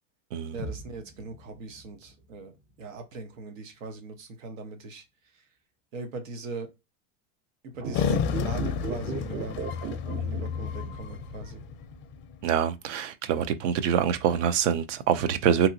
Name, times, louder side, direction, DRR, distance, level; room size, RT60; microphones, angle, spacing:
voice 1, 0.5-2.5 2.8-5.0 5.3-5.5 5.9-6.7 7.6-9.6 10.1-11.6, right 3 dB, 90° right, 1.0 m, -40 dB
sound 1, 0.6-4.5, equal, 50° right, 1.4 m, -46 dB
sound 2, 7.7-11.1 11.4-11.5, right 6 dB, 30° right, 0.4 m, -36 dB
sound 3, 7.9-12.5, left 6 dB, 30° left, 0.4 m, -31 dB
voice 2, 12.4-15.7, right 8 dB, 70° right, 0.6 m, -25 dB
2.9 x 2.7 x 2.6 m
supercardioid pair, 125°, 38 cm